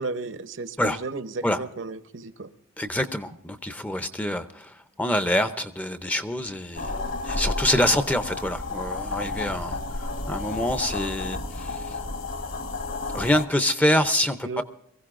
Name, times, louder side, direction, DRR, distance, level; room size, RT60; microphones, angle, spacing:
voice 1, 0.0-2.5 14.4-14.6, right 3 dB, 60° right, 11 dB, 0.8 m, -33 dB
voice 2, 2.8-7.0 7.2-12.0 13.1-14.6, left 1 dB, 5° left, 9 dB, 0.5 m, -26 dB
sound 1, 6.8-13.5, left 3 dB, 60° left, 1.5 m, -31 dB
23.5 x 15.5 x 2.5 m, 0.74 s
head